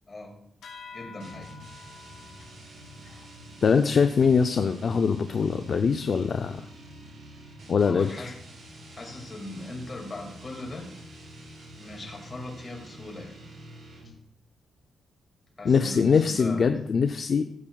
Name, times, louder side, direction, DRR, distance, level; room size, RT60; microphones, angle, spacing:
sound 1, 0.6-5.6, left 5 dB, 85° left, 1.9 m, -50 dB
voice 1, 0.9-1.5 7.7-8.4 8.9-10.9 11.7-13.4 14.0-14.1 15.6-16.6, left 2 dB, 25° left, 0 dB, 2.0 m, -39 dB
sound 2, 1.2-14.3, right 1 dB, 85° right, 3.7 m, -47 dB
voice 2, 3.6-6.7 7.7-8.3 15.6-17.4, left 5 dB, 45° left, 7 dB, 0.4 m, -23 dB
17.0 x 7.2 x 2.3 m, 0.73 s
wide cardioid pair, 155°, 0 cm